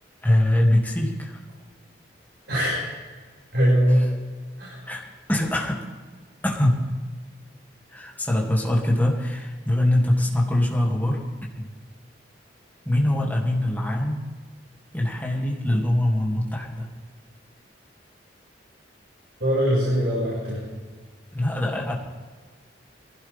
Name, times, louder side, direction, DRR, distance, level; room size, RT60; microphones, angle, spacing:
voice 1, 0.2-1.4 3.9-4.1 4.9-5.8 6.4-6.8 7.9-11.2 11.5-11.7 12.8-14.2 14.9-16.9 21.3-21.9, left 1 dB, 10° left, -2 dB, 2.7 m, -23 dB
voice 2, 2.5-2.8 3.5-4.0 4.6-4.8 19.4-20.6, equal, 65° right, -8 dB, 6.6 m, -21 dB
21.0 x 16.0 x 3.7 m, 1.5 s
head